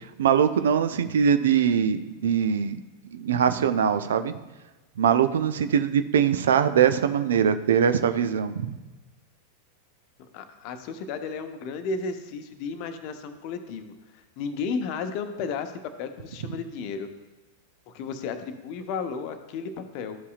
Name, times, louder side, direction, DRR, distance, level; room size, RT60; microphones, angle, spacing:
voice 1, 0.2-2.8 3.1-4.3 5.0-8.8, right 8 dB, 60° right, 10 dB, 0.4 m, -22 dB
voice 2, 10.2-13.9 14.4-15.7 16.0-17.1 17.9-20.2, left 5 dB, 45° left, 8 dB, 0.7 m, -33 dB
12.5 x 5.5 x 2.4 m, 1.1 s
figure-of-eight pair, 90°, 0 cm